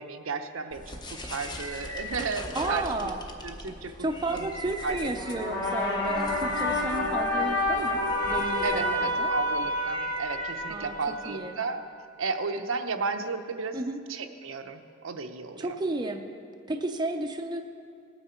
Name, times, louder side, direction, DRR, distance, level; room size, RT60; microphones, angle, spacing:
voice 1, 0.0-3.1 3.4-4.5 4.8-5.3 8.6-11.8 12.2-13.8 14.1-15.8, right 4 dB, 85° right, 6 dB, 0.7 m, -34 dB
sound 1, 0.7-11.3, left 1 dB, 20° left, 0.8 m, -40 dB
voice 2, 2.5-3.2 4.0-9.3 10.7-10.9 11.3-11.5 13.7-14.0 15.6-16.2 16.7-17.6, right 2 dB, 20° right, 4 dB, 0.5 m, -32 dB
sound 2, 5.2-11.5, left 1 dB, 55° left, 2.4 m, -29 dB
18.5 x 8.9 x 4.4 m, 2.4 s
head